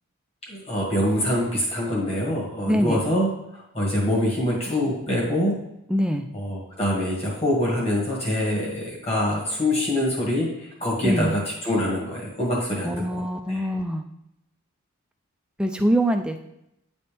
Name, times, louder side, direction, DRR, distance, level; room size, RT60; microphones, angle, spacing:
voice 1, 0.5-3.3 3.7-5.5 6.3-13.7, left 1 dB, 25° left, -4 dB, 1.8 m, -25 dB
voice 2, 2.7-3.0 5.9-6.3 11.0-11.3 12.8-14.0 15.6-16.4, equal, 5° right, 5 dB, 0.3 m, -23 dB
9.3 x 4.2 x 3.5 m, 0.82 s
head